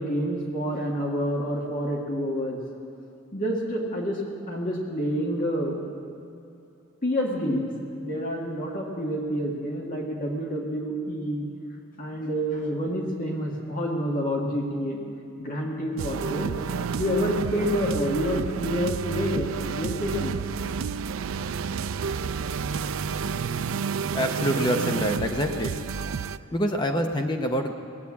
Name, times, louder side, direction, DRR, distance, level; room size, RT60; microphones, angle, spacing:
voice 1, 0.0-2.6 3.3-4.2 4.5-5.8 7.0-11.5 12.0-15.0 15.4-16.6 17.0-20.4, equal, 40° left, -2 dB, 1.8 m, -28 dB
sound 1, 16.0-26.4, right 6 dB, 80° right, 0.4 m, -30 dB
voice 2, 24.1-25.7 26.5-27.7, equal, 20° left, 4 dB, 0.8 m, -26 dB
19.0 x 8.2 x 8.5 m, 2.7 s
head